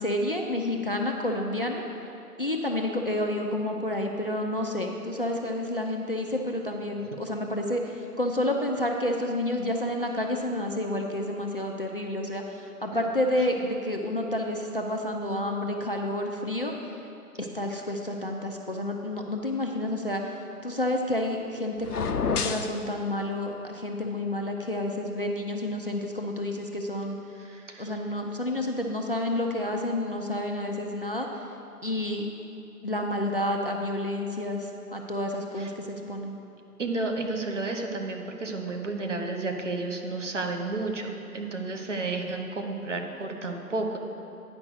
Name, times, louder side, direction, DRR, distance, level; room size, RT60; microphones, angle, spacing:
voice 1, 0.0-1.8 2.4-16.7 17.4-20.2 20.6-27.2 27.8-31.3 31.8-32.2 32.8-36.4, left 1 dB, 40° left, 1 dB, 0.5 m, -29 dB
sound 1, 21.8-22.8, left 5 dB, 75° left, 0.7 m, -28 dB
voice 2, 27.4-27.9 35.6-35.7 36.8-44.0, right 3 dB, 50° right, 3 dB, 1.0 m, -32 dB
9.8 x 5.2 x 6.3 m, 2.9 s
figure-of-eight pair, 150°, 46 cm